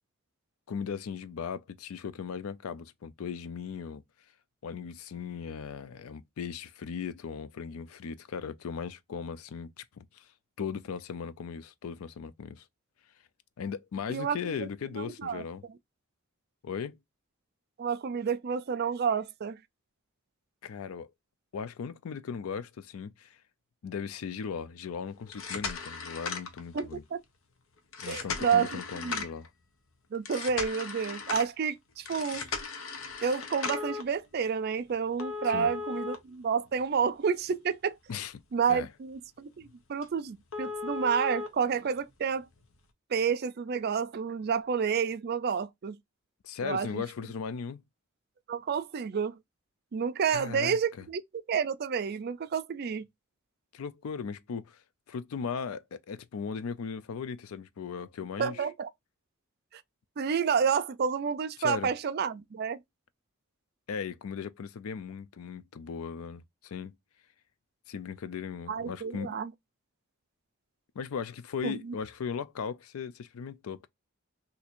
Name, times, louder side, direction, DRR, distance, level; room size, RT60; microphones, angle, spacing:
voice 1, 0.7-4.0 4.6-10.3 10.6-12.6 13.6-15.6 16.6-17.0 20.6-21.1 21.5-23.4 23.8-27.0 28.0-29.5 35.4-35.7 38.1-38.3 38.7-38.9 46.4-47.8 50.3-50.8 53.7-54.8 55.1-58.7 61.6-61.9 63.9-66.9 67.9-69.4 71.0-73.9, left 6 dB, 90° left, 0.4 m, -37 dB
voice 2, 14.1-14.7 15.0-15.4 17.8-19.6 26.7-27.2 28.1-29.2 30.1-32.5 33.2-38.0 38.5-42.5 43.1-46.0 46.6-47.0 48.5-49.4 49.9-51.2 51.5-53.1 58.4-58.9 60.2-62.8 68.7-69.5 71.6-71.9, right 6 dB, 50° right, 0.4 m, -30 dB
sound 1, 25.2-27.0 27.9-29.5 30.3-31.5 32.1-34.0 35.2-37.1 37.5-37.6 38.1-38.2 38.7-38.8 39.1-39.2 39.6-39.7 40.0-40.1 40.5-41.5 42.6-42.7, left 5 dB, 70° left, 0.8 m, -37 dB
2.7 x 2.5 x 4.2 m
head